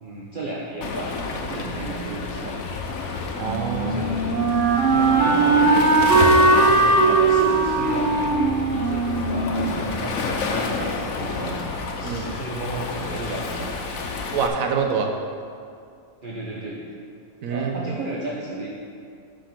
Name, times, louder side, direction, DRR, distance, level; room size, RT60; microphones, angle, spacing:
voice 1, 0.0-2.6 3.7-4.4 4.7-13.7 16.2-16.8 17.5-18.7, right 2 dB, 45° right, -2 dB, 0.9 m, -33 dB
Waves surf, 0.8-14.5, left 4 dB, 75° left, 1.2 m, -30 dB
voice 2, 3.3-4.0 12.0-12.3 14.3-15.2 17.4-17.9, right 5 dB, 75° right, 3 dB, 1.2 m, -26 dB
Wind instrument woodwind instrument, 3.4-10.3, right 3 dB, 60° right, 1.6 m, -19 dB
8.6 x 5.1 x 6.0 m, 2.3 s
omnidirectional pair, 1.5 m